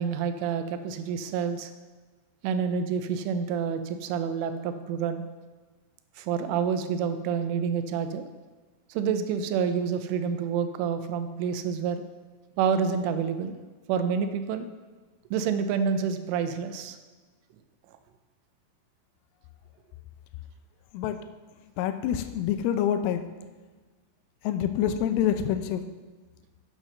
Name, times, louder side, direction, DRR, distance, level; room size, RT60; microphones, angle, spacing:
voice 1, 0.0-1.7 2.4-5.2 6.2-8.3 8.9-12.0 12.6-13.6 13.9-14.7 15.3-17.0, right 6 dB, 85° right, 9 dB, 3.2 m, -28 dB
voice 2, 21.8-23.2 24.5-25.8, left 10 dB, 90° left, 9 dB, 3.3 m, -26 dB
9.3 x 7.6 x 6.5 m, 1.3 s
omnidirectional pair, 5.6 m